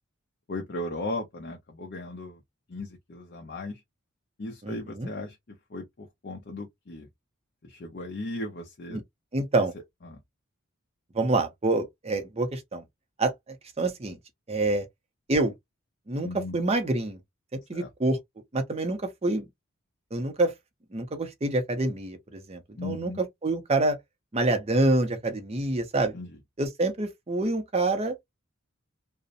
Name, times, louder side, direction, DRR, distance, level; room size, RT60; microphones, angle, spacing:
voice 1, 0.5-2.4 2.7-3.8 4.4-5.4 5.7-7.1 7.6-9.0 10.0-10.2 16.2-16.6 17.7-17.9 22.8-23.2 26.1-26.3, left 2 dB, 45° left, 0.5 m, -37 dB
voice 2, 4.6-5.1 8.9-9.0 9.3-9.7 11.1-12.8 13.2-14.2 14.5-14.9 15.3-15.5 16.1-17.2 17.5-18.2 18.5-19.5 20.1-20.5 20.9-24.0 24.3-26.1 26.6-28.2, right 2 dB, 30° right, 0.5 m, -27 dB
2.6 x 2.0 x 2.4 m
head